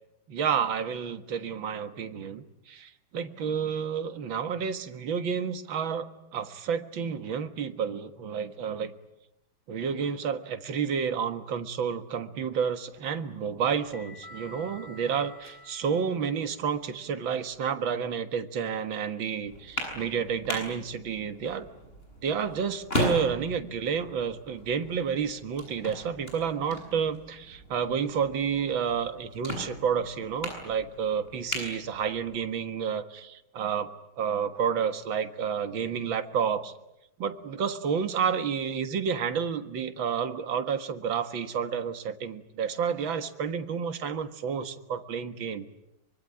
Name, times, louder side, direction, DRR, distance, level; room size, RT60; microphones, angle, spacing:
voice 1, 0.3-8.9 9.7-21.7 22.2-36.7 37.2-45.7, right 7 dB, 70° right, 8 dB, 2.3 m, -30 dB
sound 1, 12.8-17.7, left 2 dB, 10° left, 4.1 m, -51 dB
sound 2, 19.5-32.5, equal, 25° left, 7.9 m, -37 dB
24.5 x 24.0 x 10.0 m, 0.86 s
omnidirectional pair, 2.2 m